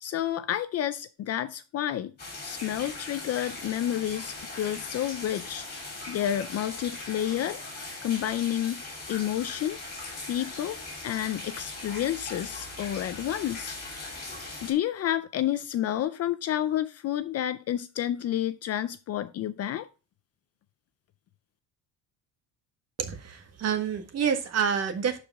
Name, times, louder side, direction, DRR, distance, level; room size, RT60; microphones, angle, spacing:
voice 1, 0.0-2.1 2.4-5.6 6.1-7.6 8.0-9.8 10.3-10.8 11.0-13.8 14.6-19.9, left 11 dB, 40° left, 0.5 m, -30 dB
sound 1, 2.2-14.7, left 2 dB, 25° left, 3.6 m, -40 dB
voice 2, 23.0-25.2, right 7 dB, 40° right, 1.6 m, -28 dB
11.5 x 5.0 x 3.5 m
cardioid pair, 180°, 39 cm